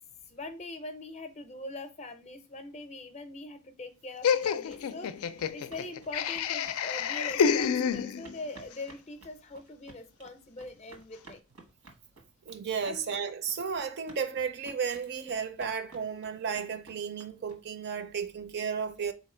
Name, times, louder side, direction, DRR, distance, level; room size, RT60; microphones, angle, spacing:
voice 1, 0.3-5.1 5.5-11.4 12.8-13.1, left 2 dB, 30° left, 0.5 m, -42 dB
sound 1, 4.1-17.9, right 2 dB, 90° right, 1.4 m, -55 dB
Laughter, 4.2-8.5, left 7 dB, 80° left, 0.4 m, -28 dB
voice 2, 12.5-19.1, right 6 dB, 50° right, 0.5 m, -33 dB
4.2 x 2.8 x 4.3 m
head